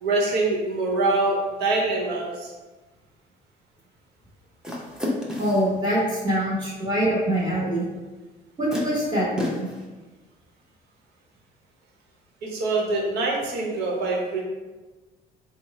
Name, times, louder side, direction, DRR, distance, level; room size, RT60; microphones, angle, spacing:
voice 1, 0.0-2.5 12.4-14.4, right 2 dB, 75° right, -1 dB, 0.9 m, -24 dB
sound 1, 4.6-5.7 7.6-7.7 8.7-9.8, left 1 dB, 5° right, 0.7 m, -31 dB
voice 2, 5.4-7.9 8.6-9.7, right 1 dB, 25° right, -6 dB, 1.1 m, -24 dB
3.6 x 2.0 x 4.1 m, 1.2 s
cardioid pair, 110°, 17 cm